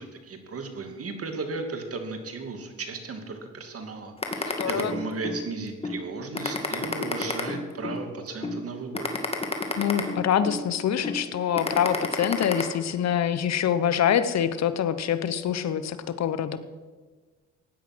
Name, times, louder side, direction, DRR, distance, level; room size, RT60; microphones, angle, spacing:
voice 1, 0.0-9.1, right 3 dB, 50° right, 6 dB, 2.6 m, -35 dB
sound 1, 4.2-5.4 5.8-6.0 6.3-8.0 8.4-8.6 8.9-10.6 11.0-11.2 11.6-12.6, left 3 dB, 20° left, 2.3 m, -29 dB
voice 2, 4.4-4.9 9.8-16.6, left 9 dB, 60° left, 13 dB, 1.0 m, -25 dB
16.0 x 10.0 x 6.2 m, 1.4 s
cardioid pair, 90°, 30 cm